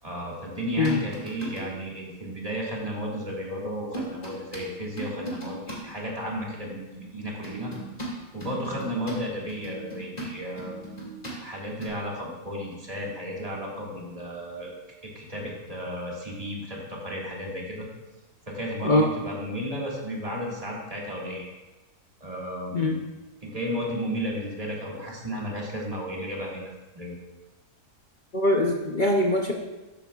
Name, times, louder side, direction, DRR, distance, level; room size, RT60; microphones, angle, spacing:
voice 1, 0.0-7.7 8.3-10.8 11.4-14.7 15.0-17.9 18.5-21.4 22.2-23.0 23.4-26.7 26.9-27.2, equal, 25° right, -3 dB, 1.8 m, -33 dB
sound 1, 0.7-1.8 3.9-4.6 5.0-5.8 7.4-11.4 11.7-11.9, right 1 dB, 25° left, 2.0 m, -37 dB
voice 2, 28.3-29.5, left 1 dB, 50° left, 0 dB, 0.5 m, -22 dB
13.0 x 8.3 x 2.4 m, 1.1 s
omnidirectional pair, 1.7 m